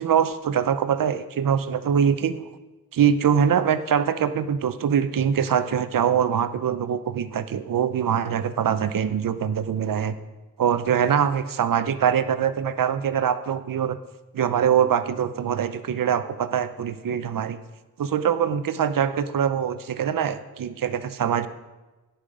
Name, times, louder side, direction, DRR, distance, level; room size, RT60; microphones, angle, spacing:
voice 1, 0.0-2.5 2.9-10.1 10.6-14.0 14.3-17.6 18.0-21.5, right 8 dB, 70° right, 12 dB, 0.7 m, -23 dB
16.5 x 5.7 x 5.0 m, 1.1 s
wide cardioid pair, 90°, 35 cm